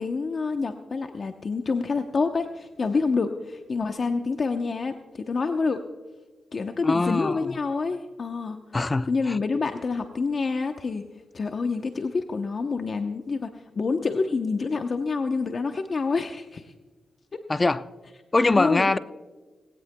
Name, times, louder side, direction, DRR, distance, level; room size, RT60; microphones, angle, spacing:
voice 1, 0.0-5.8 6.5-8.6 9.0-11.0 11.3-13.5 13.8-16.7 17.3-17.4 18.6-18.9, left 4 dB, 50° left, 6 dB, 0.9 m, -27 dB
voice 2, 6.8-7.6 8.7-9.4 17.5-17.8 18.3-19.0, left 3 dB, 30° left, 13 dB, 0.5 m, -23 dB
19.0 x 18.0 x 2.3 m, 1.3 s
cardioid pair, 70°, 0 cm